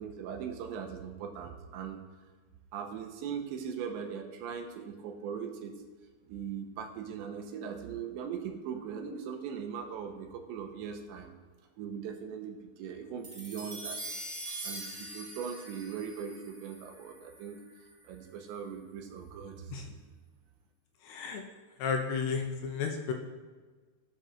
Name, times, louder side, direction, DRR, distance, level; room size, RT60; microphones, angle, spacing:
voice 1, 0.0-2.0 2.7-5.8 6.3-11.3 11.8-14.0 14.6-17.6 18.1-20.0, right 7 dB, 80° right, 4 dB, 3.2 m, -40 dB
sound 1, 13.2-17.8, right 1 dB, 20° right, 1.9 m, -43 dB
voice 2, 21.0-21.4 21.8-23.1, left 5 dB, 75° left, 3 dB, 2.8 m, -32 dB
15.5 x 5.4 x 6.5 m, 1.4 s
omnidirectional pair, 5.3 m